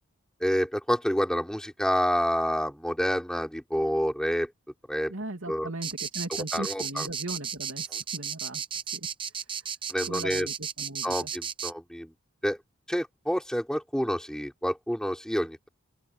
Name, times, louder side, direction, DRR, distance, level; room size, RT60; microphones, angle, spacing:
voice 1, 0.4-4.5 4.9-5.1 5.5-5.7 6.5-7.1 7.9-8.0 9.9-10.5 11.0-12.1 12.4-12.6 12.9-15.7, equal, 5° left, 4.0 m, -28 dB
voice 2, 5.1-8.6 8.9-9.7 10.0-11.3, right 2 dB, 75° right, 2.8 m, -38 dB
Animal Cicada Solo Loop, 5.8-11.7, right 7 dB, 25° right, 0.9 m, -34 dB
open air
head